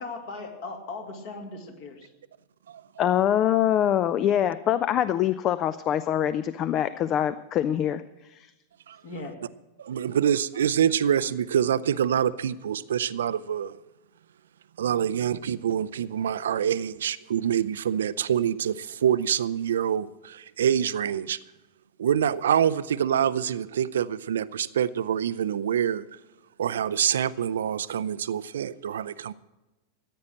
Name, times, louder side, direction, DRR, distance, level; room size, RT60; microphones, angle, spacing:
voice 1, 0.0-2.1 9.0-9.3, left 3 dB, 50° left, 3 dB, 2.5 m, -38 dB
voice 2, 3.0-8.0 8.3-8.5, left 10 dB, 35° left, 15 dB, 0.4 m, -24 dB
voice 3, 9.8-13.8 14.8-21.4 22.0-26.0 26.6-29.3, right 9 dB, 65° right, 16 dB, 0.4 m, -26 dB
14.5 x 9.2 x 6.4 m, 1.0 s
figure-of-eight pair, 90°, 0 cm